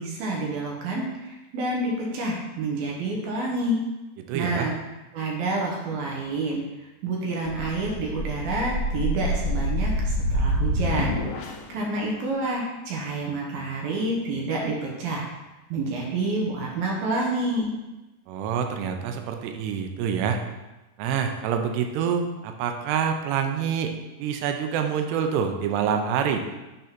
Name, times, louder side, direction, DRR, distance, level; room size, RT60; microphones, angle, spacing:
voice 1, 0.0-3.8 4.3-4.8 5.1-6.6 7.0-11.1 11.7-15.3 15.7-17.7, right 2 dB, 70° right, -2 dB, 2.7 m, -28 dB
voice 2, 4.2-4.7 18.3-20.4 21.0-23.9 24.2-26.5, right 7 dB, 90° right, 5 dB, 2.8 m, -26 dB
sound 1, 7.5-11.8, equal, 75° left, 2.3 m, -27 dB
8.1 x 3.7 x 5.9 m, 1.1 s
omnidirectional pair, 4.7 m